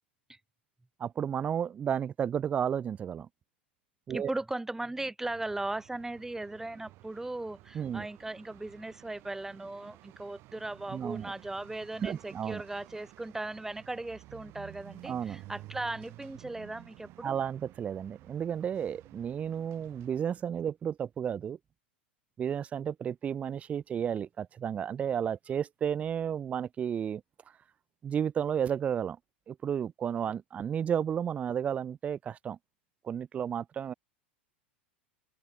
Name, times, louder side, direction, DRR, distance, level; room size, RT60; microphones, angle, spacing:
voice 1, 1.0-3.3 4.1-4.3 7.7-8.1 10.9-11.3 12.0-12.6 15.0-15.4 17.2-21.6 22.4-27.2 28.0-29.2 29.5-32.6 33.0-33.9, right 8 dB, 20° right, 0.3 m, -32 dB
voice 2, 4.1-17.3, right 2 dB, 5° right, 1.2 m, -38 dB
sound 1, 5.2-20.3, right 19 dB, 45° right, 1.4 m, -53 dB
open air
figure-of-eight pair, 90°, 6 cm